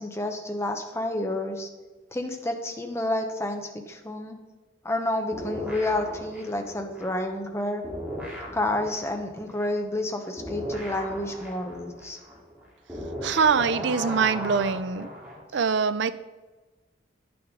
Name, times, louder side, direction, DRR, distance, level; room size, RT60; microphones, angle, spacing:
voice 1, 0.0-1.7 2.1-4.4 4.8-7.8 8.5-12.2, left 1 dB, 15° left, 4 dB, 0.8 m, -29 dB
sound 1, 5.3-7.6 7.8-15.4, equal, 10° right, 2.1 m, -37 dB
voice 2, 13.2-15.1 15.5-16.1, right 5 dB, 60° right, 13 dB, 0.4 m, -23 dB
9.9 x 6.0 x 3.7 m, 1.2 s
head